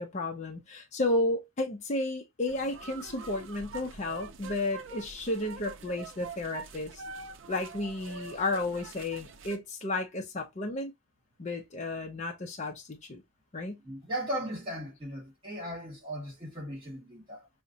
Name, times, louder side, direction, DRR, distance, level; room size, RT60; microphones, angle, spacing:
voice 1, 0.0-7.0 7.5-10.9 11.4-13.2 13.5-13.8, left 2 dB, 35° left, 0.5 m, -32 dB
sound 1, 2.5-9.6, right 4 dB, 70° right, 0.5 m, -45 dB
voice 2, 13.8-17.5, equal, 25° right, 1.9 m, -37 dB
4.9 x 2.1 x 2.7 m
head